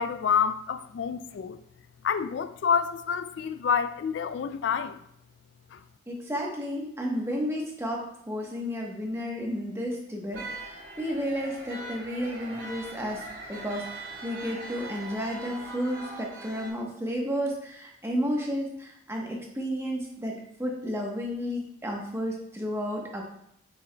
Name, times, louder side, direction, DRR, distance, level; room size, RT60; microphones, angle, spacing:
voice 1, 0.0-1.6 2.0-5.0 5.7-5.8, left 6 dB, 70° left, 13 dB, 0.3 m, -28 dB
voice 2, 6.1-23.2, equal, 15° right, -1 dB, 1.0 m, -32 dB
sound 1, 10.3-16.7, right 2 dB, 75° right, 2.4 m, -41 dB
7.7 x 5.7 x 2.2 m, 0.72 s
head